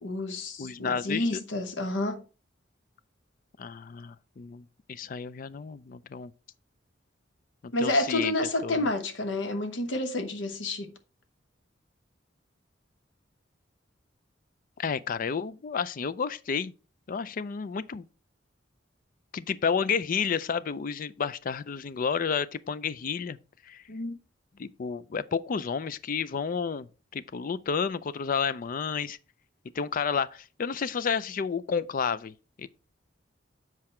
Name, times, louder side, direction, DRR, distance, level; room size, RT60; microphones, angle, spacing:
voice 1, 0.0-2.2 7.7-10.9 23.9-24.2, left 2 dB, 85° left, 1.0 m, -29 dB
voice 2, 0.6-1.4 3.6-6.3 7.6-8.3 8.6-8.9 14.8-16.7 17.1-18.0 19.3-23.4 23.6-23.8 24.6-26.9 27.1-29.2 29.7-32.7, left 6 dB, 45° left, 0.4 m, -31 dB
7.7 x 4.7 x 4.3 m
head